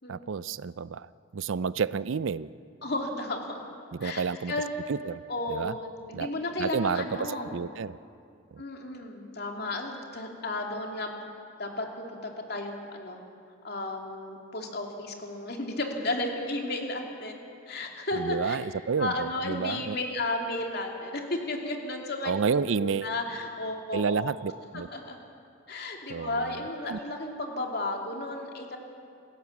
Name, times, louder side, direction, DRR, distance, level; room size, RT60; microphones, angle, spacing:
voice 1, 0.1-2.5 3.9-4.5 4.9-5.2 5.5-5.8 6.1-6.3 6.6-8.0 8.5-8.6 18.2-20.0 22.2-23.1 23.9-24.9 26.1-26.5 26.8-27.0, right 5 dB, 70° right, 17 dB, 0.5 m, -30 dB
voice 2, 2.8-3.6 4.0-4.7 5.3-7.6 8.6-11.3 11.6-13.2 13.6-17.4 17.7-18.6 19.0-22.3 22.8-24.3 24.7-25.2 25.7-28.8, left 2 dB, 50° left, 2 dB, 2.7 m, -33 dB
27.0 x 16.0 x 7.2 m, 2.4 s
head